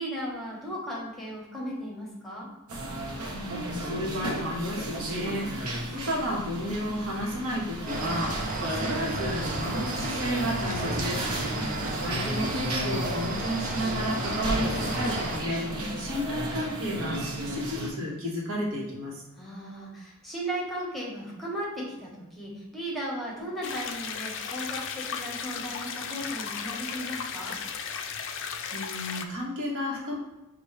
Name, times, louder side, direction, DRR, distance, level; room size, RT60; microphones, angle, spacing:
voice 1, 0.0-2.5 11.4-11.8 15.7-15.9 19.4-27.6, right 1 dB, ahead, -4 dB, 1.1 m, -36 dB
sound 1, 2.7-17.9, right 1 dB, 90° right, 0.9 m, -33 dB
voice 2, 3.3-11.3 12.0-19.2 28.7-30.2, equal, 65° right, -4 dB, 1.3 m, -32 dB
sound 2, 7.9-15.4, right 2 dB, 40° right, 0.6 m, -33 dB
sound 3, 23.6-29.2, left 6 dB, 60° left, 0.4 m, -35 dB
6.0 x 2.4 x 3.2 m, 0.99 s
head